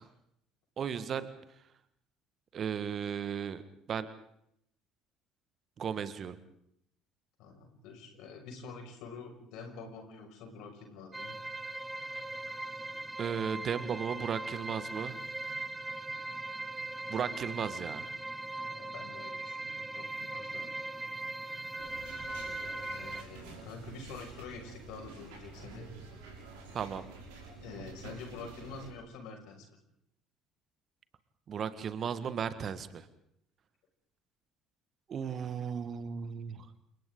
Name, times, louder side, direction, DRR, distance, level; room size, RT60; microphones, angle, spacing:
voice 1, 0.8-1.3 2.5-3.6 3.9-4.1 5.8-6.4 13.2-15.2 17.1-18.1 26.7-27.0 31.5-33.1 35.1-36.7, right 7 dB, 40° right, 13 dB, 1.6 m, -35 dB
voice 2, 7.4-11.4 18.7-20.7 22.9-25.9 27.6-29.8, left 4 dB, 60° left, 2 dB, 5.9 m, -47 dB
sound 1, 11.1-23.2, right 2 dB, 10° right, 1.1 m, -40 dB
sound 2, 21.8-28.9, right 3 dB, 65° right, 6.6 m, -49 dB
30.0 x 28.0 x 3.9 m, 0.74 s
figure-of-eight pair, 55°, 0 cm